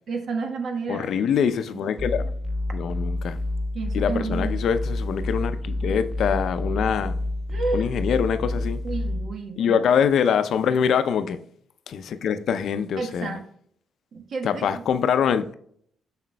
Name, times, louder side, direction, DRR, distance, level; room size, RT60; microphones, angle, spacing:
voice 1, 0.1-1.1 3.7-4.6 7.5-7.9 8.8-9.8 13.0-13.4 14.1-14.7, right 4 dB, 60° right, 1.2 m, -30 dB
voice 2, 0.9-2.3 2.7-3.4 3.9-7.2 7.7-8.8 9.6-11.4 11.9-13.4 14.4-15.6, left 7 dB, 65° left, 0.5 m, -24 dB
sound 1, 2.0-9.3, left 1 dB, 5° right, 0.6 m, -28 dB
7.4 x 5.8 x 2.2 m
cardioid pair, 90°, 0 cm